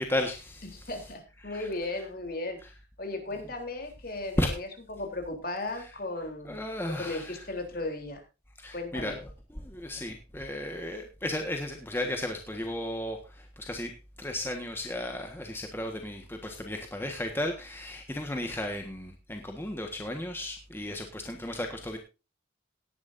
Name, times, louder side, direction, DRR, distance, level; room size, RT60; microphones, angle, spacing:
voice 1, 0.0-0.9 1.4-1.7 2.6-2.7 4.4-4.5 5.8-5.9 6.4-7.4 8.6-22.0, left 1 dB, 10° left, 3 dB, 1.5 m, -34 dB
voice 2, 0.6-2.6 3.0-6.6 6.9-8.2 8.7-9.2, left 2 dB, 50° left, 4 dB, 3.6 m, -36 dB
18.0 x 10.5 x 2.7 m, 0.29 s
head